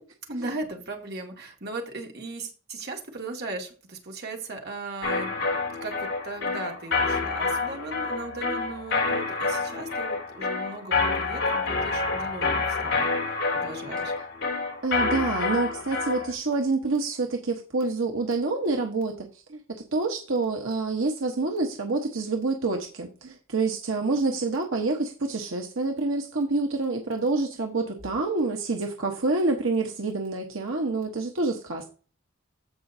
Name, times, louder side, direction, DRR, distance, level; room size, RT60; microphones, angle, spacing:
voice 1, 0.3-14.1, right 2 dB, 55° right, 2 dB, 2.1 m, -37 dB
sound 1, 5.0-16.3, left 3 dB, 70° left, 4.0 m, -28 dB
voice 2, 14.8-19.6 19.9-31.9, right 3 dB, 80° right, 3 dB, 1.2 m, -27 dB
15.5 x 5.1 x 2.7 m, 0.38 s
head